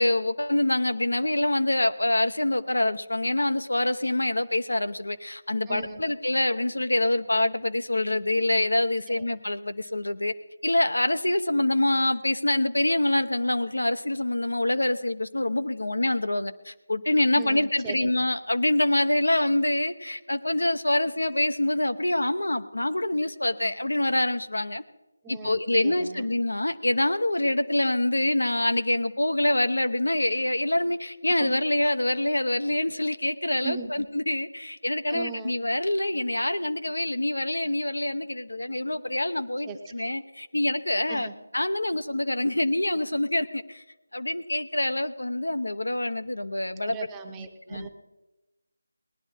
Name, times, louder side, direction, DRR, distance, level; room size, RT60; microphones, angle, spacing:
voice 1, 0.0-10.3 10.6-24.8 25.3-41.3 41.5-43.8 44.1-47.0 47.7-47.9, left 1 dB, 85° left, 9 dB, 0.8 m, -25 dB
voice 2, 5.7-6.0 9.2-9.3 17.3-18.1 25.2-26.3 31.4-31.5 33.6-34.0 35.1-35.6 39.6-39.8 41.1-41.3 46.8-47.9, right 5 dB, 10° right, 5 dB, 0.8 m, -38 dB
18.5 x 10.5 x 4.5 m, 1.0 s
figure-of-eight pair, 165°, 0 cm